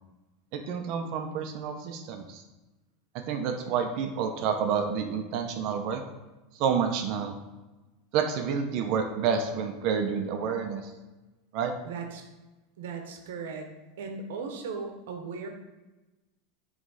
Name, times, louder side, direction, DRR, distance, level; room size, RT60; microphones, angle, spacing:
voice 1, 0.5-2.4 3.1-6.0 6.5-7.3 8.1-10.9 11.5-11.7, right 6 dB, 45° right, 5 dB, 0.6 m, -29 dB
voice 2, 11.8-12.3 12.8-13.7 14.0-15.5, right 5 dB, 85° right, 4 dB, 0.9 m, -37 dB
8.3 x 3.2 x 4.0 m, 1.1 s
supercardioid pair, 155°, 0 cm